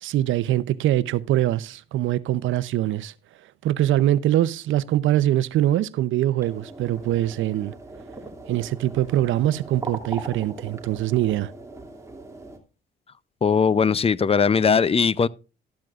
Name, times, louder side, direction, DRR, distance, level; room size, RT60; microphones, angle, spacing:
voice 1, 0.0-3.1 3.6-7.7 8.5-11.5, right 13 dB, 80° right, 0.7 m, -23 dB
sound 1, 6.4-12.6, right 2 dB, 15° right, 2.5 m, -39 dB
voice 2, 13.4-15.3, left 6 dB, 30° left, 0.5 m, -19 dB
13.0 x 12.0 x 2.4 m
cardioid pair, 90°, 20 cm